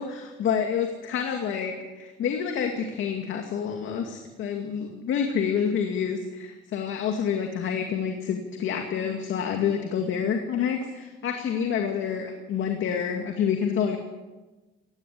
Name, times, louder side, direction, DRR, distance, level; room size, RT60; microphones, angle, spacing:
voice 1, 0.0-14.0, left 7 dB, 75° left, 3 dB, 2.3 m, -28 dB
18.0 x 17.0 x 8.5 m, 1.2 s
cardioid pair, 90°, 20 cm